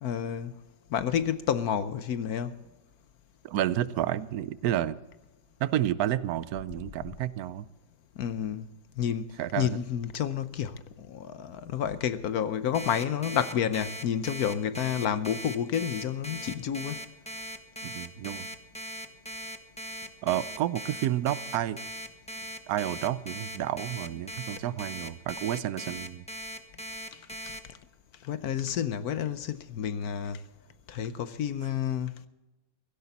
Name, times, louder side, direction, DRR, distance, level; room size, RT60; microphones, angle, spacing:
voice 1, 0.0-0.5 0.9-2.6 8.2-8.7 9.0-17.0 27.1-27.5 28.2-30.4 30.9-32.1, left 8 dB, 65° left, 1.1 m, -30 dB
voice 2, 3.4-5.0 5.6-7.7 9.4-9.7 17.8-18.5 20.2-21.8 22.7-26.2, right 12 dB, 70° right, 1.0 m, -30 dB
Alarm, 12.7-27.6, equal, 5° left, 0.6 m, -39 dB
16.5 x 16.5 x 4.1 m
omnidirectional pair, 1.9 m